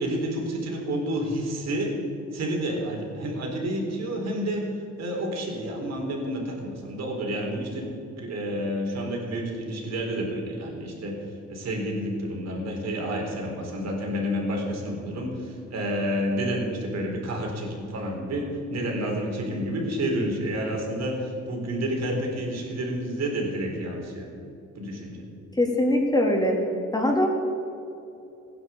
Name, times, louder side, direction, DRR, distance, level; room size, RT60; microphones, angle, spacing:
voice 1, 0.0-2.0 2.3-11.2 11.5-24.3 24.8-25.2, equal, 60° right, 0 dB, 4.2 m, -29 dB
voice 2, 25.6-26.6 26.9-27.3, left 1 dB, 15° left, -1 dB, 3.3 m, -22 dB
16.0 x 10.5 x 7.4 m, 2.8 s
cardioid pair, 90°, 30 cm